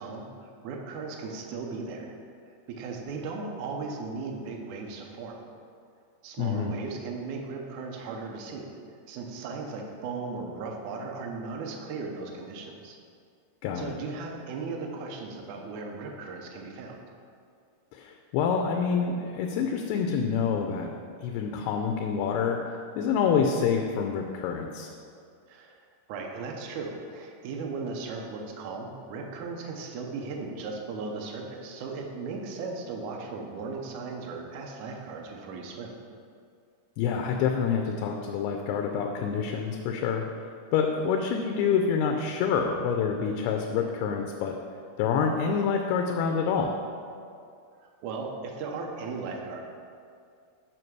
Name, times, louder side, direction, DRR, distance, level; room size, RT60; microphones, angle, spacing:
voice 1, 0.0-2.1 2.4-5.4 6.2-8.7 9.1-13.0 13.8-17.0 25.5-25.8 26.1-36.0 47.8-49.6, right 4 dB, 80° right, 1 dB, 1.7 m, -37 dB
voice 2, 6.4-6.7 13.6-14.0 17.9-20.9 21.2-24.9 37.0-44.6 45.0-46.7, left 6 dB, 85° left, 3 dB, 2.5 m, -27 dB
7.8 x 5.9 x 4.7 m, 2.3 s
omnidirectional pair, 4.6 m